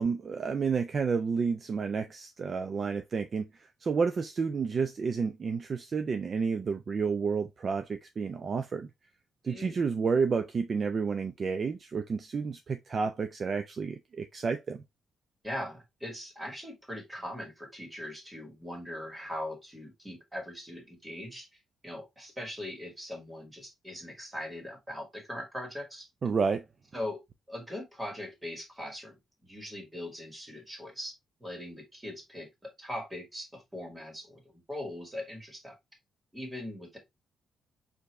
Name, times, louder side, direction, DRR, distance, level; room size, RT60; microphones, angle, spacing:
voice 1, 0.0-8.9 9.4-14.8 26.2-26.6, right 5 dB, 40° right, 0.4 m, -30 dB
voice 2, 9.4-9.8 15.4-21.5 21.8-26.1 26.9-27.2 27.5-29.2 29.4-31.1 31.4-35.7 36.3-37.0, left 1 dB, 10° right, 1.8 m, -40 dB
4.7 x 2.7 x 3.3 m
cardioid pair, 120°, 0 cm